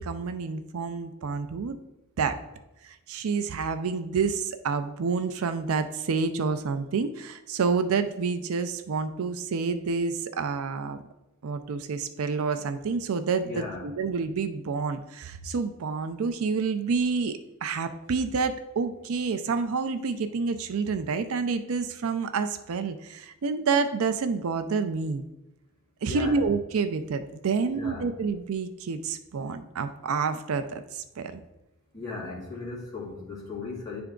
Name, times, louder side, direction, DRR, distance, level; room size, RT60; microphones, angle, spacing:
voice 1, 0.0-1.8 2.2-2.4 2.8-11.0 11.4-25.3 26.0-31.4, right 5 dB, 75° right, 10 dB, 0.4 m, -28 dB
voice 2, 13.4-13.9 26.0-26.5 27.6-28.1 31.9-34.0, left 3 dB, 15° left, -7 dB, 2.1 m, -37 dB
10.0 x 3.4 x 3.7 m, 0.95 s
head